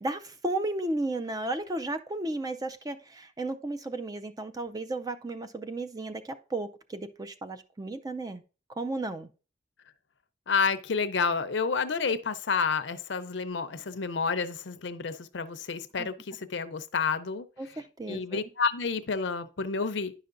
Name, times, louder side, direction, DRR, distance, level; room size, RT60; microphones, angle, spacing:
voice 1, 0.0-8.4 8.8-9.3 16.0-16.1 17.6-18.4, right 2 dB, 20° right, 0.4 m, -34 dB
voice 2, 10.5-17.5 18.1-20.1, left 5 dB, 75° left, 0.6 m, -29 dB
10.0 x 5.7 x 2.5 m
head